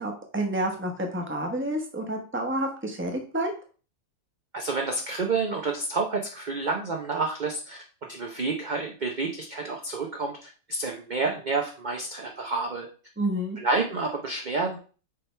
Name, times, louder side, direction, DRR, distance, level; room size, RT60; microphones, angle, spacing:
voice 1, 0.0-3.5 13.2-13.6, right 1 dB, 10° right, 2 dB, 0.9 m, -29 dB
voice 2, 4.5-7.8 8.1-12.9 13.6-14.8, right 3 dB, 40° right, 1 dB, 0.7 m, -29 dB
6.6 x 3.5 x 4.4 m, 0.38 s
omnidirectional pair, 1.7 m